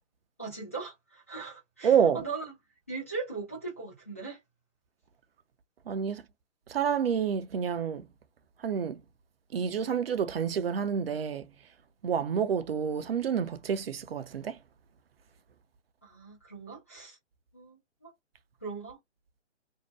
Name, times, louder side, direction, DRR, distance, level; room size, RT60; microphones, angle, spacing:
voice 1, 0.4-2.5 2.9-4.4 16.0-17.2 17.5-18.1 18.6-19.0, right 4 dB, 15° left, 0.4 m, -39 dB
voice 2, 1.8-2.2 5.9-6.2 6.7-8.1 8.6-9.0 9.5-11.5 12.0-14.6, right 7 dB, 55° right, 0.5 m, -28 dB
2.6 x 2.0 x 3.1 m
figure-of-eight pair, 140°, 36 cm